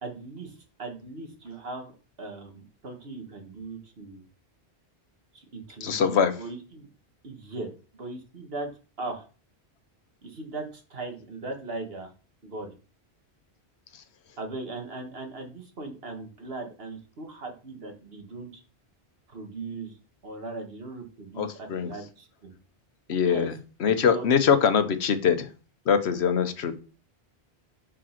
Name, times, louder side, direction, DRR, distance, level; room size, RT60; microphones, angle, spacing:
voice 1, 0.0-1.9 2.2-4.2 5.3-6.9 7.2-8.7 9.0-9.3 10.2-12.1 12.4-12.7 14.4-18.6 19.3-20.0 20.2-22.5 23.1-23.5 23.8-24.5, right 3 dB, 65° right, 3 dB, 1.7 m, -39 dB
voice 2, 5.8-6.3 21.4-21.9 23.1-23.5 23.8-25.5 25.9-26.8, left 7 dB, 85° left, 10 dB, 1.1 m, -23 dB
5.4 x 5.1 x 5.8 m, 0.35 s
omnidirectional pair, 1.1 m